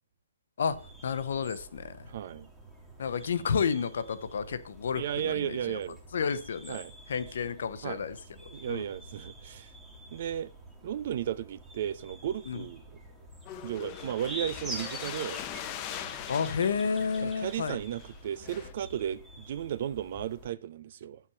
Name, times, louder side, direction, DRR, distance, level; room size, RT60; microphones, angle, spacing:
voice 1, 0.6-2.1 3.0-5.8 6.1-6.8 7.1-8.2 8.7-8.8 12.5-12.6 16.3-17.8, left 6 dB, 65° left, 0.8 m, -31 dB
sound 1, 0.6-20.5, right 1 dB, 5° right, 1.7 m, -47 dB
voice 2, 2.1-2.5 4.9-6.0 6.7-6.9 7.8-8.0 8.5-9.7 10.1-10.5 10.8-13.0 13.6-15.4 17.2-21.2, right 10 dB, 50° right, 0.5 m, -34 dB
sound 2, 13.5-18.7, left 11 dB, 30° left, 0.7 m, -41 dB
6.8 x 5.7 x 5.8 m
hypercardioid pair, 140°, 0 cm